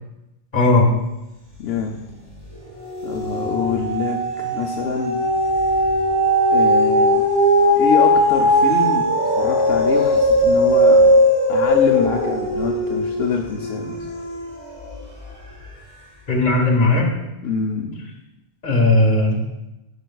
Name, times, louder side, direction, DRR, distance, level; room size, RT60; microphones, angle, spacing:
voice 1, 0.5-1.0 16.3-17.1 18.6-19.4, left 2 dB, 50° left, -1 dB, 1.4 m, -16 dB
voice 2, 1.6-2.0 3.0-5.3 6.5-7.2 7.8-11.2 11.5-14.1 17.4-18.2, left 6 dB, 80° left, 1 dB, 0.9 m, -26 dB
sound 1, 1.6-2.2 2.5-15.0 15.6-15.7, equal, 65° right, 2.7 m, -18 dB
12.0 x 5.2 x 2.3 m, 0.97 s
omnidirectional pair, 1.0 m